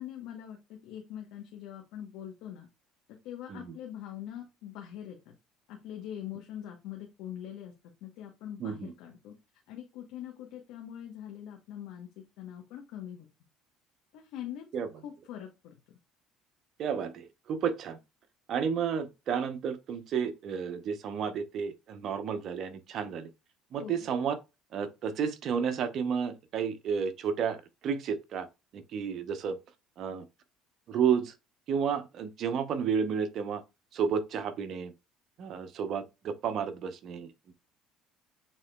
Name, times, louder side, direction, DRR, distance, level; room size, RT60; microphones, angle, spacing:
voice 1, 0.0-2.7 3.2-5.3 5.7-7.7 8.0-9.3 9.7-13.3 14.1-14.7 15.0-15.8 23.8-24.1, left 10 dB, 75° left, 0.9 m, -43 dB
voice 2, 8.6-8.9 14.7-14.9 16.8-18.0 18.5-23.3 23.7-24.4 24.7-28.5 28.7-29.6 30.0-30.2 30.9-31.3 31.7-33.6 33.9-34.9 35.4-37.3, right 7 dB, 55° right, 0.7 m, -31 dB
7.2 x 2.9 x 2.2 m
supercardioid pair, 90°, 0 cm